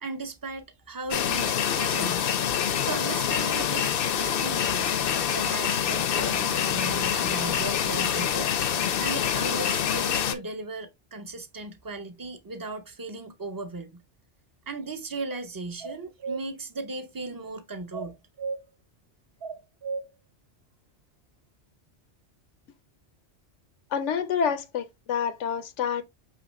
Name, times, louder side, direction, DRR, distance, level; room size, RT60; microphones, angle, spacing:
voice 1, 0.0-2.2 2.8-4.9 5.3-8.5 9.0-14.0 14.7-18.2, right 3 dB, 25° right, 0.4 m, -37 dB
sound 1, 1.1-10.4, left 9 dB, 60° left, 0.7 m, -26 dB
sound 2, 15.8-16.4 17.9-18.6 19.4-20.1, right 4 dB, 60° right, 0.8 m, -33 dB
voice 2, 23.9-26.0, left 7 dB, 90° left, 1.0 m, -28 dB
5.6 x 3.0 x 3.0 m
omnidirectional pair, 1.2 m